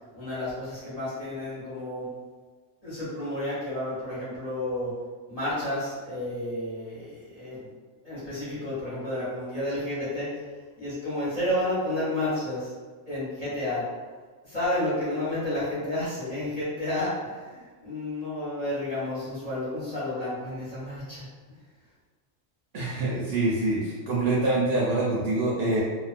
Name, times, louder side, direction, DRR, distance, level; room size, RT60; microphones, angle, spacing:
voice 1, 0.1-2.1 2.8-4.9 5.3-7.1 7.4-7.7 8.0-10.3 10.8-12.7 13.1-13.9 14.4-21.2, left 1 dB, 35° left, -10 dB, 0.8 m, -31 dB
voice 2, 22.7-25.8, right 2 dB, 60° right, -7 dB, 0.7 m, -25 dB
2.3 x 2.3 x 2.4 m, 1.5 s
omnidirectional pair, 1.3 m